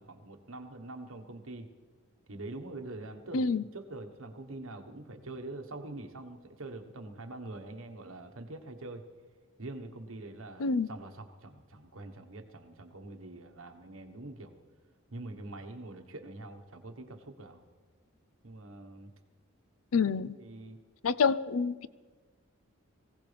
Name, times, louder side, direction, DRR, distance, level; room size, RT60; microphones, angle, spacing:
voice 1, 0.0-1.7 2.3-3.4 3.7-9.0 9.6-14.6 15.1-17.6 18.4-19.1 20.2-20.8, right 2 dB, 70° right, 5 dB, 1.3 m, -44 dB
voice 2, 19.9-20.3 21.0-21.9, left 5 dB, 75° left, 15 dB, 0.5 m, -27 dB
24.0 x 16.5 x 3.4 m, 1.4 s
head